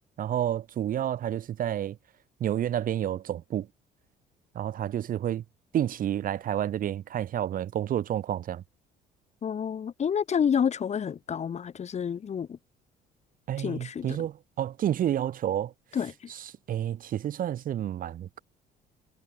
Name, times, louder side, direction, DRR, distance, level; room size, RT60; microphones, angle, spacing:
voice 1, 0.2-2.0 2.4-3.7 4.5-5.4 5.7-8.6 13.5-15.7 16.7-18.4, right 11 dB, 55° right, 1.6 m, -29 dB
voice 2, 9.4-12.6 13.6-14.2 15.9-16.1, left 7 dB, 40° left, 3.1 m, -29 dB
cardioid pair, 110°, 17 cm